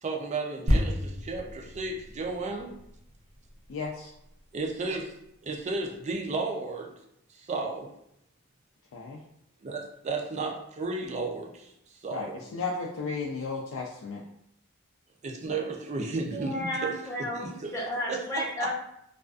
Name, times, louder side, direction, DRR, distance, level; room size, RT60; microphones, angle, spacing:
voice 1, 0.0-2.7 4.5-5.1 5.4-6.9 7.4-7.9 9.6-11.7 12.0-12.4 15.2-16.9 17.2-17.7 18.1-18.2 18.6-18.7, right 3 dB, 35° right, 2 dB, 0.4 m, -33 dB
sound 1, 0.7-4.3 4.9-5.0, equal, 70° right, 0.8 m, -31 dB
voice 2, 3.7-4.1 8.9-9.2 12.1-14.2, left 4 dB, 65° left, -2 dB, 0.4 m, -34 dB
voice 3, 16.3-18.7, equal, 15° left, -5 dB, 0.7 m, -33 dB
2.4 x 2.3 x 2.3 m, 0.78 s
head